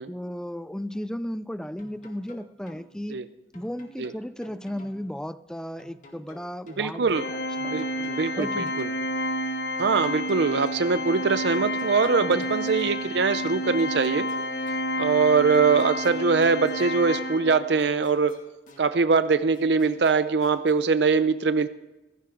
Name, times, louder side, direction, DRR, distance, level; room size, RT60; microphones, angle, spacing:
voice 1, 0.0-3.2 3.5-7.7 8.4-8.7 12.2-12.5, equal, 5° left, 15 dB, 0.4 m, -35 dB
sound 1, 1.8-2.8 3.5-5.0 5.8-6.9 7.5-9.0 9.8-10.9 11.5-13.0 13.8-14.9 15.5-17.0 17.8-18.9 19.5-20.7, equal, 45° left, 2.1 m, -51 dB
voice 2, 6.8-7.2 7.6-8.9 9.8-14.3 15.0-18.4 18.8-21.7, right 4 dB, 70° right, 12 dB, 0.6 m, -22 dB
Organ, 7.1-17.8, equal, 60° left, 1.2 m, -30 dB
15.5 x 15.0 x 3.8 m, 1.0 s
head